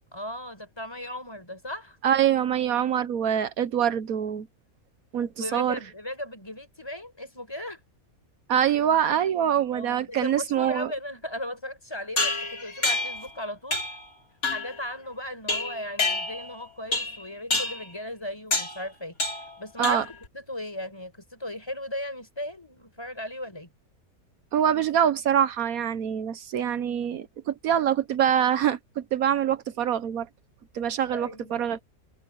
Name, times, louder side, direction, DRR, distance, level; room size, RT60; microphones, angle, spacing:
voice 1, 0.1-2.0 5.4-7.8 9.7-13.8 14.5-23.7 31.1-31.6, left 1 dB, 15° left, 5.3 m, -37 dB
voice 2, 2.0-4.5 5.1-5.8 8.5-10.9 19.8-20.0 24.5-30.3 30.7-31.8, right 9 dB, 75° right, 1.3 m, -25 dB
sound 1, 12.2-13.3 13.7-14.0 14.4-14.8 15.5-16.6 16.9-17.2 17.5-17.9 18.5-18.8 19.2-19.5 19.8-20.3, left 3 dB, 75° left, 3.9 m, -28 dB
omnidirectional pair, 1.5 m